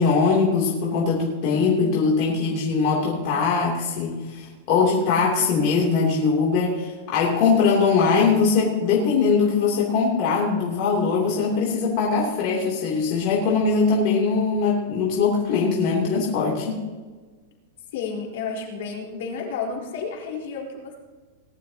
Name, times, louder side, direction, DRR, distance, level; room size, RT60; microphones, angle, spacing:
voice 1, 0.0-16.8, left 5 dB, 45° left, -4 dB, 3.0 m, -21 dB
voice 2, 17.9-21.0, left 5 dB, 70° left, -1 dB, 4.2 m, -31 dB
19.5 x 12.0 x 2.9 m, 1.3 s
supercardioid pair, 160°, 0 cm